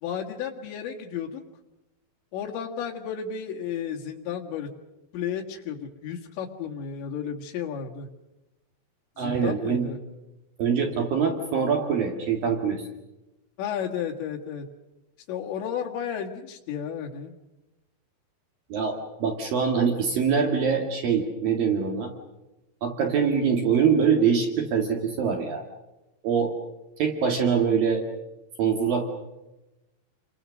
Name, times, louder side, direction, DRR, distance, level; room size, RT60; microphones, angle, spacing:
voice 1, 0.0-1.4 2.3-4.7 5.1-8.1 9.2-10.0 13.6-14.7 15.3-17.3, left 8 dB, 90° left, -1 dB, 4.3 m, -33 dB
voice 2, 9.2-9.9 10.6-12.9 18.7-22.1 22.8-25.6 26.2-26.5 27.0-28.0 28.6-29.0, right 6 dB, 60° right, 3 dB, 3.6 m, -24 dB
29.5 x 23.5 x 6.5 m, 1.0 s
omnidirectional pair, 5.0 m